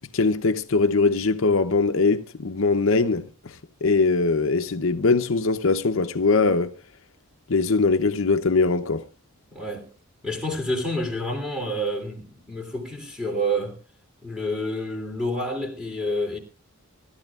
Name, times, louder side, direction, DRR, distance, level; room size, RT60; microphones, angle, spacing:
voice 1, 0.1-6.7 7.5-9.0, left 4 dB, 60° left, 0.7 m, -21 dB
voice 2, 9.5-9.9 10.2-13.8 14.2-16.4, equal, 5° right, 3.2 m, -28 dB
25.5 x 13.0 x 2.4 m
head